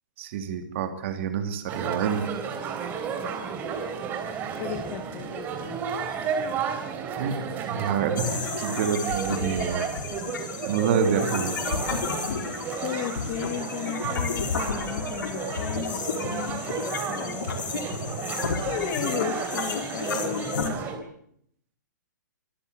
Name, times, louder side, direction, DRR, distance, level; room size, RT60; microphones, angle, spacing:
voice 1, 0.2-2.3 7.2-9.9 10.7-11.5, right 7 dB, 40° right, 7 dB, 3.1 m, -27 dB
sound 1, 1.7-21.0, right 6 dB, 20° right, 3.4 m, -32 dB
voice 2, 4.6-5.8 12.8-17.7 18.6-20.9, left 11 dB, 25° left, 9 dB, 1.3 m, -35 dB
sound 2, 8.2-20.7, left 5 dB, 80° left, 4.6 m, -32 dB
24.5 x 14.5 x 8.1 m, 0.68 s
hypercardioid pair, 165°, 10 cm